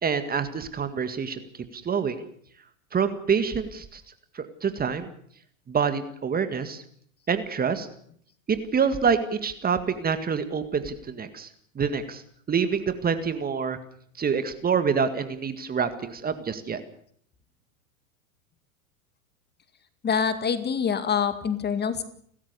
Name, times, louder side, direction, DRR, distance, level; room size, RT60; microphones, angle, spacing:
voice 1, 0.0-1.4 1.7-2.3 2.9-4.0 4.4-5.1 5.7-6.8 7.3-7.9 8.5-11.5 11.8-12.2 12.5-13.8 14.2-16.8, right 6 dB, 20° right, 10 dB, 1.9 m, -26 dB
voice 2, 20.0-22.0, left 7 dB, 25° left, 11 dB, 2.1 m, -25 dB
30.0 x 13.5 x 6.9 m, 0.62 s
hypercardioid pair, 95°, 41 cm